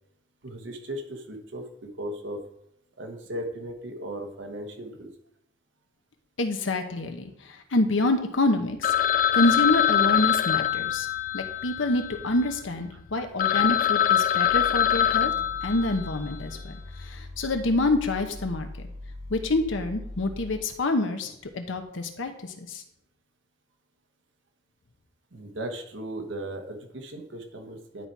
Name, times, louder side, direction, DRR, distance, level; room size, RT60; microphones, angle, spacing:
voice 1, 0.4-2.4 3.0-5.1 12.9-13.3 25.3-28.1, right 1 dB, 70° right, 4 dB, 1.3 m, -37 dB
voice 2, 6.4-8.9 9.3-11.1 11.3-15.3 15.6-16.8 17.1-18.9 19.3-22.8, left 2 dB, 80° left, 6 dB, 1.0 m, -27 dB
Telephone, 8.8-12.6 13.1-13.2 13.4-16.3, left 10 dB, 45° left, 0.3 m, -24 dB
sound 1, 14.5-20.6, left 2 dB, 40° right, 1.7 m, -41 dB
10.5 x 4.3 x 4.7 m, 0.81 s
head